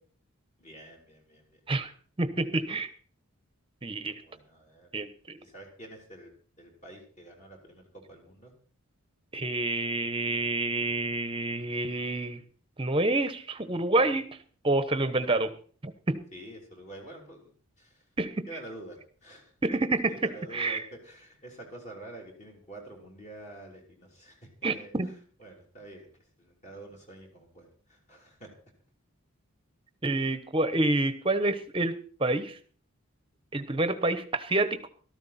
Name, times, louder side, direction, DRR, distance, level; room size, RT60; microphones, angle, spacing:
voice 1, 0.6-1.6 4.2-4.9 5.4-6.3 6.6-8.5 16.3-17.5 17.8-18.1 18.5-19.8 20.1-25.1 25.4-28.5, right 1 dB, 30° left, 0 dB, 3.2 m, -47 dB
voice 2, 2.2-2.9 3.8-4.2 4.9-5.4 9.3-12.4 12.8-14.2 14.6-15.5 15.8-16.2 18.2-18.5 19.6-20.1 20.5-20.8 24.6-25.1 30.0-32.6 33.5-34.9, right 2 dB, 25° right, 11 dB, 1.0 m, -28 dB
14.0 x 13.5 x 4.3 m, 0.43 s
head